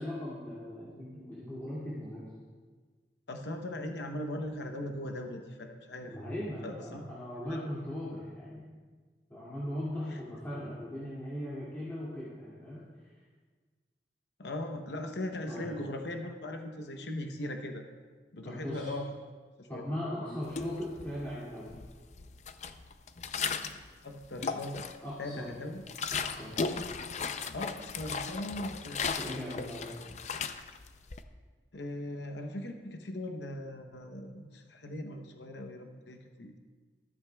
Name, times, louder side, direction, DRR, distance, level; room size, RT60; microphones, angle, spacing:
voice 1, 0.0-2.2 6.1-8.7 9.3-13.1 15.5-15.7 18.4-18.9 19.7-21.7 25.0-25.6 26.1-26.6 29.2-29.9, left 1 dB, 10° left, -11 dB, 2.2 m, -39 dB
voice 2, 3.3-6.1 6.6-7.1 7.5-7.6 10.1-10.2 14.4-17.8 18.3-19.1 19.6-19.8 20.2-20.4 24.0-24.8 25.2-25.8 27.5-29.0 31.7-36.5, left 1 dB, 80° left, 4 dB, 0.8 m, -39 dB
sound 1, 20.5-21.3 21.7-23.9 24.2-25.1 25.5-31.2, left 5 dB, 40° left, 0.5 m, -36 dB
14.0 x 13.5 x 2.3 m, 1.5 s
head